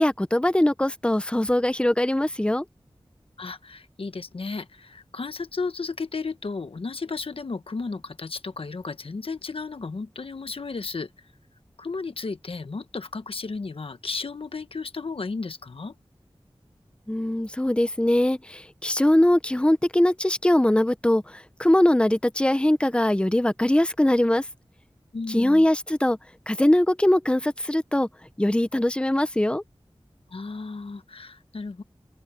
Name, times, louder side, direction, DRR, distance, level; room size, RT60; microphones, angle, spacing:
voice 1, 0.0-2.7 17.1-24.5 25.3-26.2 26.5-28.1 28.4-29.6, left 1 dB, 10° left, 0.9 m, -21 dB
voice 2, 3.4-11.1 11.8-15.9 25.1-25.6 30.3-31.8, left 4 dB, 80° left, 1.2 m, -34 dB
open air
wide cardioid pair, 60°, 9 cm